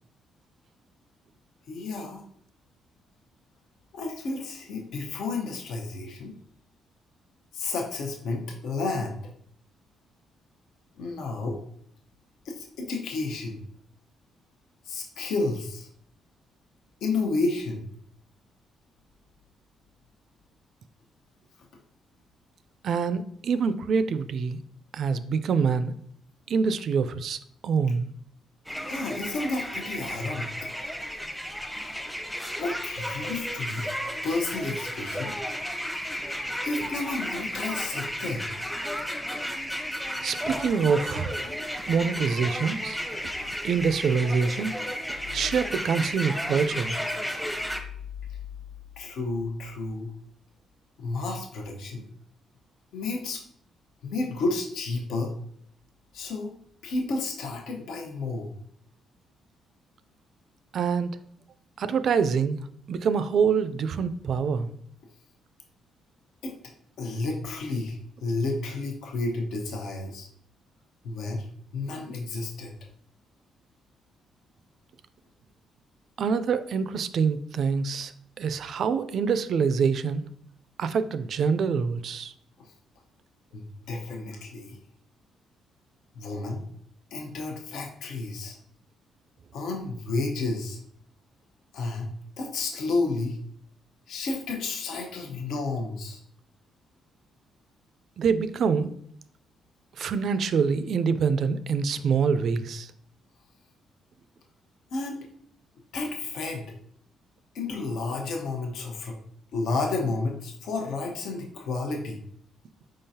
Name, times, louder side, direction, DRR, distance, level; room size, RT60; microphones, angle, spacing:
voice 1, 1.7-2.2 3.9-6.3 7.5-9.2 11.0-11.6 12.4-13.6 14.8-15.9 17.0-17.9 28.8-30.7 32.6-33.9 34.2-35.3 36.6-38.5 49.0-50.1 51.0-52.0 52.9-53.4 54.0-55.3 56.1-56.6 56.8-58.5 66.4-66.5 67.0-70.3 71.0-71.5 71.7-72.8 82.6-82.7 83.5-84.8 86.1-86.6 87.1-88.6 89.5-90.8 91.7-92.1 92.4-93.4 94.1-96.2 104.9-105.3 105.9-106.7 107.5-109.2 109.5-112.2, left 3 dB, 80° left, 0 dB, 0.9 m, -31 dB
voice 2, 22.8-24.6 24.9-25.9 26.5-28.1 40.2-41.3 41.9-43.0 43.6-44.7 45.3-47.0 60.7-61.2 61.8-62.6 62.9-64.7 76.2-78.1 78.4-80.2 80.8-82.3 98.2-98.9 100.0-102.9, right 6 dB, 60° right, 13 dB, 0.3 m, -25 dB
sound 1, 28.7-47.8, equal, 5° left, 0.7 m, -33 dB
5.0 x 3.8 x 2.8 m, 0.65 s
cardioid pair, 90°, 0 cm